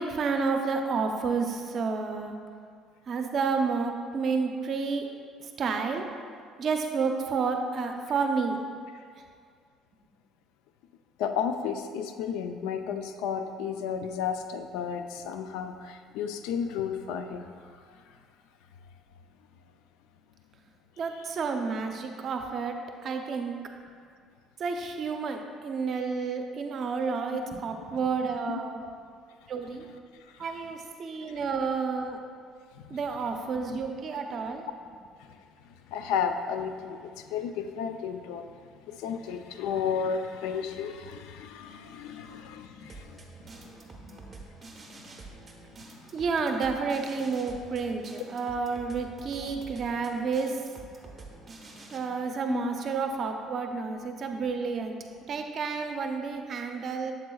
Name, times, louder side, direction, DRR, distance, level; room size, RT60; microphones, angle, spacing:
voice 1, 0.0-2.4 3.1-5.1 5.4-6.0 6.6-8.6 21.0-22.8 23.0-23.6 24.6-28.8 29.5-29.9 30.4-32.2 32.9-34.6 42.8-43.0 43.4-43.5 43.9-44.1 46.1-50.6 51.9-55.0 55.3-57.1, right 5 dB, 45° right, 4 dB, 0.6 m, -30 dB
voice 2, 11.2-17.5 28.5-28.6 30.3-30.5 32.8-33.0 35.9-38.5 38.9-43.2 43.6-43.7 52.5-52.7, left 7 dB, 85° left, 8 dB, 0.4 m, -33 dB
sound 1, 42.9-52.0, right 3 dB, 25° right, 1.1 m, -47 dB
7.4 x 7.4 x 2.3 m, 2.1 s
cardioid pair, 110°, 0 cm